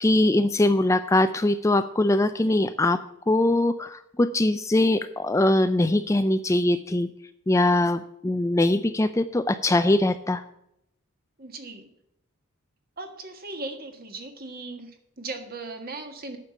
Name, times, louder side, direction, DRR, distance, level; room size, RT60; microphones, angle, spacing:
voice 1, 0.0-3.0 3.3-7.1 7.5-10.4, left 1 dB, 15° left, 10 dB, 0.3 m, -22 dB
voice 2, 11.4-11.9 13.0-16.4, right 3 dB, 45° right, 6 dB, 1.6 m, -38 dB
9.8 x 6.8 x 8.1 m, 0.78 s
head